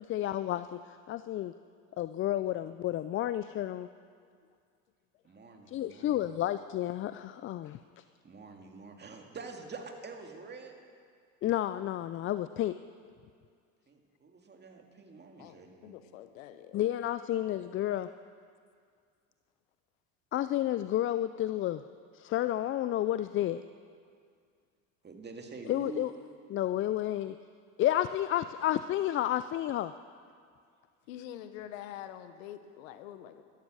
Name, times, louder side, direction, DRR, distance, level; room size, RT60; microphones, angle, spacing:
voice 1, 0.0-1.5 2.0-3.9 5.7-8.0 11.4-12.8 16.7-18.1 20.3-21.8 22.1-23.6 25.7-26.1 26.5-27.4 27.8-29.9, left 13 dB, 35° left, 13 dB, 0.4 m, -31 dB
voice 2, 5.2-6.3 8.2-10.8 13.9-15.9 25.0-26.1, right 4 dB, 25° right, 3 dB, 2.1 m, -46 dB
voice 3, 15.4-16.8 31.1-33.4, left 11 dB, 80° left, 11 dB, 1.1 m, -46 dB
13.5 x 13.0 x 6.4 m, 2.2 s
supercardioid pair, 90°, 39 cm